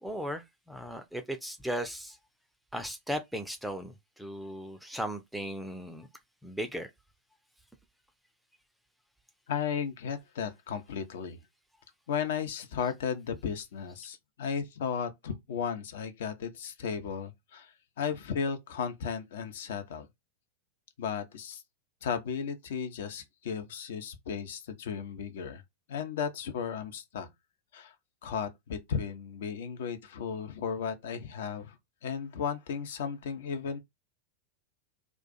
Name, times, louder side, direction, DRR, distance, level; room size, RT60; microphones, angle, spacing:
voice 1, 0.0-2.2 2.7-6.1 6.4-6.9 12.8-12.9, equal, ahead, 0.5 m, -37 dB
voice 2, 9.5-11.4 12.1-20.1 21.0-21.6 22.0-25.6 25.9-27.3 27.7-27.9 28.2-31.8 32.0-33.8, left 7 dB, 60° left, 0.7 m, -35 dB
2.4 x 2.3 x 4.0 m
figure-of-eight pair, 90°, 0 cm